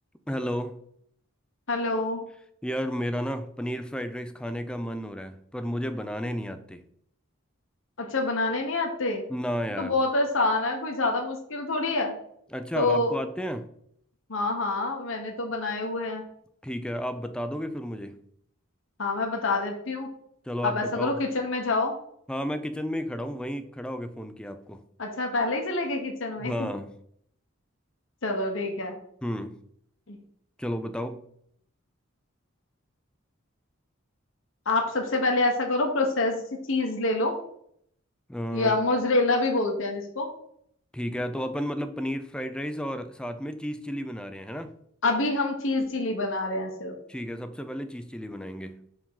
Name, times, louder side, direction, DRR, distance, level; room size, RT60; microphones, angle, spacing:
voice 1, 0.3-0.8 2.6-6.8 9.3-10.0 12.5-13.7 16.6-18.2 20.4-21.2 22.3-24.8 26.4-27.0 29.2-29.6 30.6-31.3 38.3-38.8 40.9-44.8 47.1-48.8, equal, 5° left, 0.4 m, -32 dB
voice 2, 1.7-2.2 8.0-9.2 9.8-12.1 12.7-13.1 14.3-16.3 19.0-20.1 20.6-22.0 25.0-26.7 28.2-29.0 30.1-30.2 34.7-36.4 36.7-37.4 38.5-40.3 45.0-46.9, left 2 dB, 70° left, 1.0 m, -26 dB
4.9 x 3.6 x 5.5 m
head